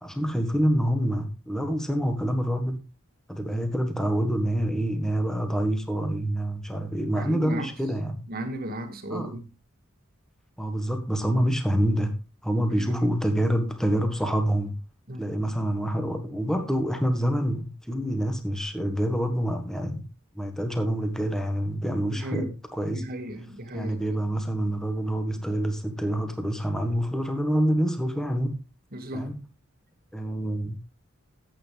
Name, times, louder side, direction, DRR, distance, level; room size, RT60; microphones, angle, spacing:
voice 1, 0.0-2.8 3.3-8.2 9.1-9.3 10.6-14.7 15.2-20.0 20.3-23.0 23.7-28.6 29.1-29.4 30.1-30.8, equal, ahead, 1.5 m, -27 dB
voice 2, 7.1-7.7 8.3-9.5 12.7-13.1 15.1-15.3 21.9-24.2 28.9-29.3, right 1 dB, 45° right, 2.0 m, -35 dB
14.5 x 8.6 x 3.4 m
head